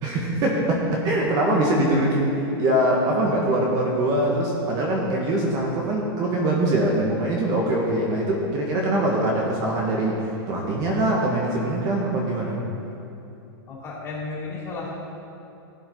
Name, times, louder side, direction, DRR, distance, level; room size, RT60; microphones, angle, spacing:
voice 1, 0.0-12.6, right 1 dB, 30° right, -2 dB, 1.7 m, -23 dB
voice 2, 13.7-14.9, left 3 dB, 20° left, -5 dB, 3.1 m, -33 dB
17.5 x 8.2 x 3.9 m, 2.9 s
supercardioid pair, 155°, 13 cm